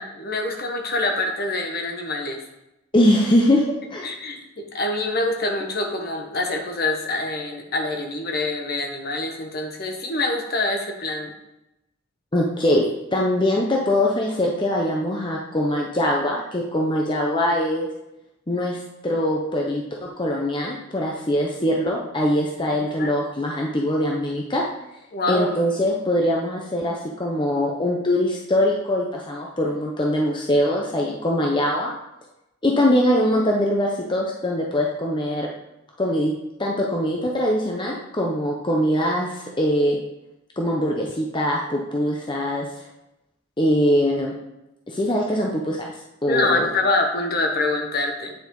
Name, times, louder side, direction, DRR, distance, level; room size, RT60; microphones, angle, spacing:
voice 1, 0.0-2.4 4.0-11.3 23.0-23.2 25.1-25.5 46.3-48.3, left 2 dB, 50° left, 3 dB, 1.2 m, -25 dB
voice 2, 2.9-3.6 3.9-4.1 12.3-12.9 13.1-17.9 18.5-24.6 25.3-31.9 32.6-35.5 36.0-36.3 36.6-40.0 40.6-42.7 43.6-44.3 44.9-45.8 46.2-46.7, left 1 dB, 25° left, -1 dB, 0.7 m, -22 dB
8.9 x 5.5 x 3.9 m, 0.91 s
head